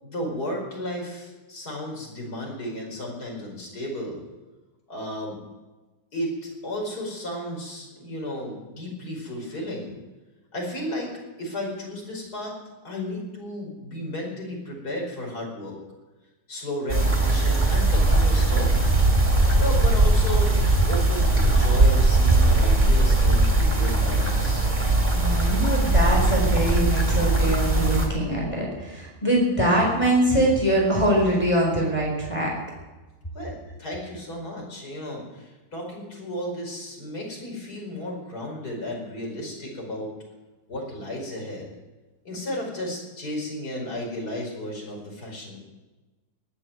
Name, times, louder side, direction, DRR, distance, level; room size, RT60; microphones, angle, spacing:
voice 1, 0.0-4.2 4.9-5.4 6.1-9.9 10.5-11.1 11.4-12.5 12.8-15.7 16.5-19.0 19.6-20.6 20.9-24.7 33.3-40.1 40.7-41.7 42.3-45.6, left 1 dB, 45° left, 0 dB, 5.4 m, -33 dB
sound 1, 16.9-28.1, right 2 dB, 20° right, 2.8 m, -20 dB
voice 2, 25.1-32.5, right 1 dB, 15° left, -2 dB, 4.2 m, -23 dB
19.5 x 9.1 x 7.7 m, 1.2 s
omnidirectional pair, 2.2 m